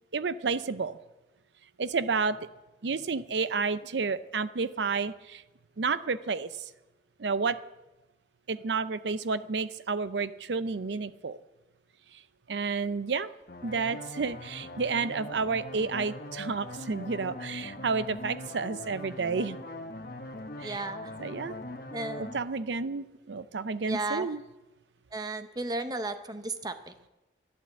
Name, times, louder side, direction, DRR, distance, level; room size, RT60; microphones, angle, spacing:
voice 1, 0.1-1.0 1.8-2.5 2.8-5.4 5.8-6.7 7.2-7.6 8.5-11.4 12.1-12.2 12.5-13.3 13.6-19.6 20.6-20.8 21.2-21.5 22.2-24.4, right 4 dB, 85° right, 15 dB, 0.6 m, -31 dB
sound 1, 13.5-22.4, left 1 dB, 55° left, 1.3 m, -41 dB
voice 2, 20.6-21.1 21.9-22.4 23.9-24.3 25.1-27.1, right 2 dB, 20° right, 10 dB, 0.8 m, -34 dB
12.0 x 11.5 x 7.4 m, 1.0 s
head